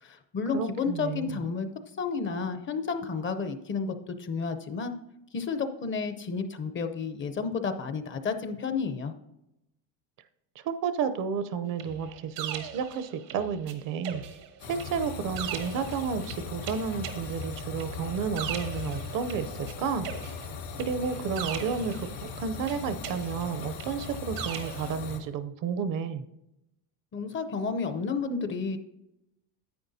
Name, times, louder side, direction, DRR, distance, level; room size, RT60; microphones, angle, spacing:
voice 1, 0.0-1.7 2.0-4.9 5.3-9.1 27.1-28.8, left 5 dB, 30° left, 9 dB, 0.6 m, -31 dB
voice 2, 0.5-1.4 10.6-14.2 14.7-20.1 20.8-26.2, right 6 dB, 50° right, 12 dB, 0.6 m, -31 dB
sound 1, 11.8-13.7 14.0-19.7 20.0-22.3 22.7-24.9, right 9 dB, 85° right, 1.3 m, -40 dB
sound 2, 14.6-25.2, left 5 dB, 75° left, 1.7 m, -39 dB
10.5 x 8.4 x 2.7 m, 0.87 s
cardioid pair, 140°, 41 cm